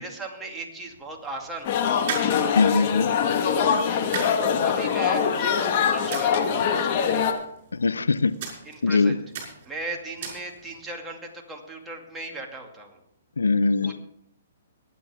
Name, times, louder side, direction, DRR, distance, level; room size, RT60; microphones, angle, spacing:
voice 1, 0.0-2.0 3.4-3.7 4.2-4.3 4.6-7.4 8.6-9.2 9.7-13.0 13.8-14.0, right 2 dB, 10° right, 0 dB, 2.4 m, -37 dB
sound 1, 0.8-10.9, right 6 dB, 50° right, 5.8 m, -40 dB
sound 2, 1.6-7.3, left 7 dB, 45° left, 1.8 m, -23 dB
voice 2, 2.6-3.1 7.7-8.3 8.8-9.2 13.4-14.0, left 4 dB, 90° left, 15 dB, 0.6 m, -21 dB
23.0 x 9.1 x 3.6 m, 0.76 s
hypercardioid pair, 135°, 0 cm